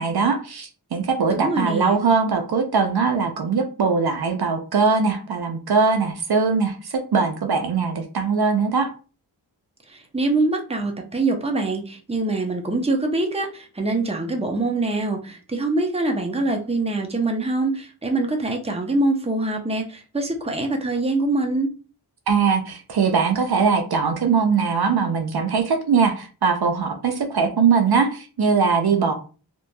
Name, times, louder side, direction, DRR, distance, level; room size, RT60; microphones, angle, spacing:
voice 1, 0.0-8.9 22.3-29.1, right 5 dB, 60° right, 5 dB, 0.5 m, -21 dB
voice 2, 1.3-2.0 9.9-21.7, right 2 dB, 15° right, 3 dB, 0.6 m, -24 dB
3.0 x 2.5 x 2.2 m, 0.36 s
wide cardioid pair, 45°, 43 cm